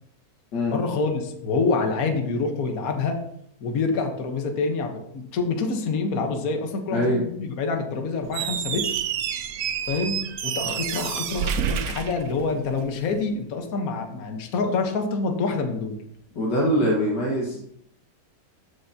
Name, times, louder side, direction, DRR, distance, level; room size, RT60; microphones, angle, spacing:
voice 1, 0.7-3.2 3.6-9.0 9.8-10.1 10.4-16.0, left 4 dB, 55° left, 4 dB, 1.6 m, -26 dB
voice 2, 6.9-7.2 16.3-17.6, equal, 80° left, -3 dB, 2.3 m, -23 dB
Squeak, 8.2-12.9, right 9 dB, 65° right, 0.9 m, -29 dB
14.0 x 7.1 x 2.8 m, 0.71 s
omnidirectional pair, 1.9 m